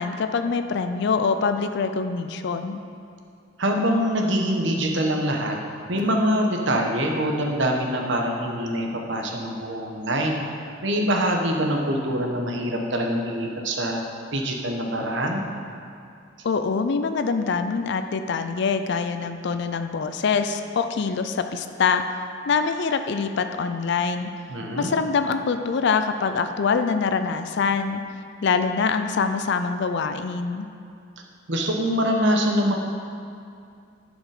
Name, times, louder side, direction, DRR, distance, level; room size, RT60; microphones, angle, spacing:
voice 1, 0.0-2.8 16.4-22.0 22.5-24.3 24.8-28.0 28.4-30.7, left 5 dB, 65° left, 8 dB, 0.4 m, -24 dB
voice 2, 3.6-5.6 5.9-10.4 10.8-14.0 14.3-15.4 24.5-24.9 31.5-32.8, equal, 70° right, 1 dB, 1.1 m, -24 dB
11.0 x 5.3 x 4.9 m, 2.4 s
head